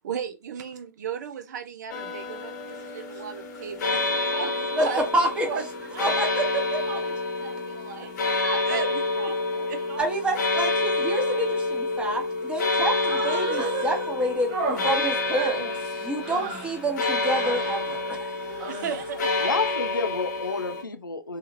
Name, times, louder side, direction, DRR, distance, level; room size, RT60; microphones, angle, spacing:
voice 1, 0.0-5.0 5.4-5.6 5.9-6.2 6.9-7.1 7.4-10.1 18.7-19.6, right 7 dB, 60° right, 0.6 m, -35 dB
sound 1, 1.9-20.8, left 3 dB, 60° left, 0.7 m, -28 dB
voice 2, 5.1-5.5 6.0-6.8 10.0-14.5 14.8-15.6 16.0-18.4, right 1 dB, 10° right, 0.8 m, -28 dB
Human voice, 12.9-14.1 14.5-16.8 17.2-17.8 18.4-19.2, right 4 dB, 40° right, 1.0 m, -33 dB
voice 3, 19.4-21.4, left 4 dB, 90° left, 0.4 m, -29 dB
2.8 x 2.4 x 2.9 m
figure-of-eight pair, 100°, 11 cm